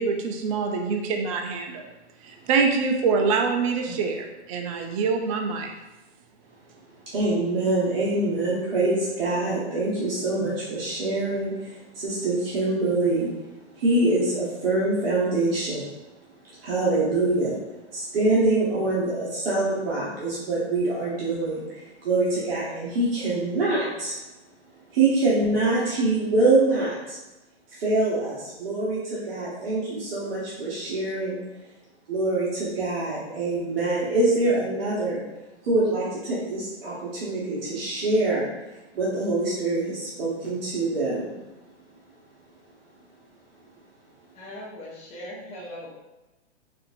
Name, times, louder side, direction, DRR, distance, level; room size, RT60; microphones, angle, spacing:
voice 1, 0.0-1.9 2.2-5.7, right 5 dB, 35° right, 3 dB, 0.4 m, -25 dB
voice 2, 7.1-13.3 13.7-15.9 16.5-17.6 17.9-24.1 24.9-27.2 27.7-31.4 32.1-35.2 35.6-41.4, right 2 dB, 55° right, -7 dB, 1.1 m, -25 dB
voice 3, 44.3-45.9, left 1 dB, 20° left, -6 dB, 0.8 m, -39 dB
4.3 x 2.5 x 2.6 m, 1.0 s
hypercardioid pair, 130°, 34 cm